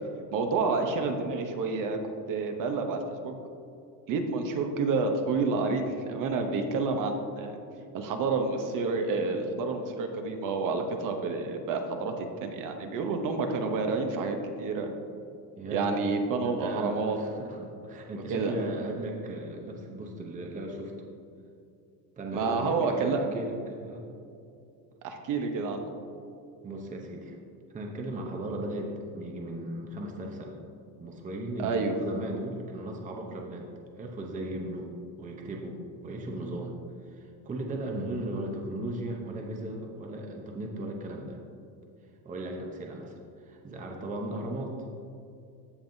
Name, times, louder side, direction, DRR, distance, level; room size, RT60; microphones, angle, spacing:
voice 1, 0.3-2.0 2.3-3.3 4.1-7.6 7.9-14.9 15.7-17.2 18.3-18.5 22.3-23.2 25.0-25.8 31.6-31.9, right 4 dB, 50° right, 5 dB, 0.9 m, -29 dB
voice 2, 15.6-16.1 16.4-20.9 22.2-24.1 26.6-27.4 27.7-30.6 31.0-33.7 34.0-34.9 35.2-36.7 37.0-41.4 42.2-44.7, right 1 dB, 20° right, 1 dB, 0.7 m, -37 dB
15.5 x 5.3 x 2.7 m, 2.5 s
cardioid pair, 150°, 41 cm